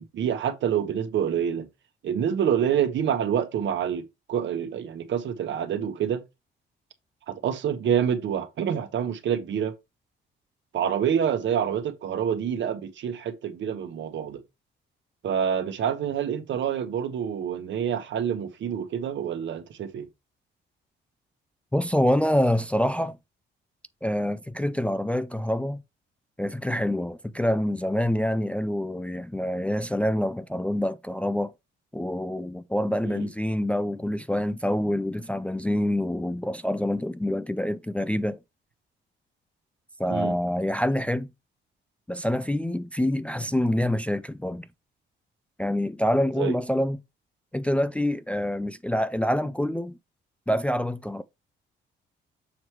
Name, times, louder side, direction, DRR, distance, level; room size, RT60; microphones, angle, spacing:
voice 1, 0.0-1.7 2.0-4.0 4.3-6.2 7.3-9.7 10.7-14.4 15.2-20.1 33.0-33.3 40.1-40.4 46.4-46.6, right 8 dB, 70° right, 1.1 m, -27 dB
voice 2, 21.7-23.2 24.0-25.8 26.4-31.5 31.9-38.4 40.0-41.3 42.1-44.7 45.6-47.0 47.5-50.0 50.5-51.2, left 1 dB, 5° left, 0.4 m, -26 dB
7.1 x 3.1 x 4.7 m
cardioid pair, 90°, 20 cm